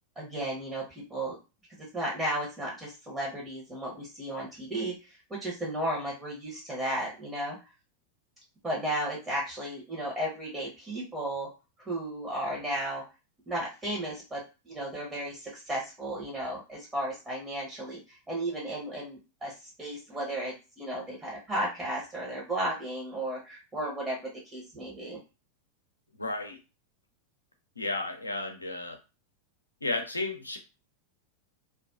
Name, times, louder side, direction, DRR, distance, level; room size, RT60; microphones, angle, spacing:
voice 1, 0.2-0.8 1.1-1.4 1.9-4.9 5.3-7.6 8.6-11.5 11.8-13.0 13.5-18.0 18.3-25.2, right 1 dB, 15° right, -4 dB, 0.9 m, -34 dB
voice 2, 26.2-26.6 27.8-29.0 29.8-30.6, left 2 dB, 80° left, 4 dB, 0.5 m, -33 dB
2.4 x 2.3 x 2.3 m, 0.30 s
figure-of-eight pair, 90°, 0 cm